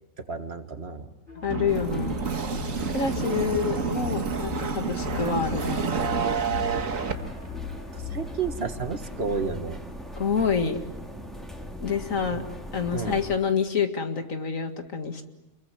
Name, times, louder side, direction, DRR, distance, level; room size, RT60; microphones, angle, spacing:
voice 1, 0.3-1.1 7.9-9.8 12.3-12.4 12.9-13.2, right 5 dB, 50° right, 8 dB, 1.9 m, -31 dB
voice 2, 1.3-2.2 2.9-5.9 10.2-10.8 11.8-12.4 12.7-15.2, left 6 dB, 85° left, 7 dB, 2.4 m, -27 dB
sound 1, 1.3-8.6, left 6 dB, 45° left, 4.6 m, -39 dB
sound 2, 1.5-7.1, right 6 dB, 85° right, 2.0 m, -29 dB
sound 3, 1.7-13.4, equal, ahead, 2.7 m, -40 dB
29.0 x 22.0 x 9.1 m, 0.95 s
omnidirectional pair, 1.3 m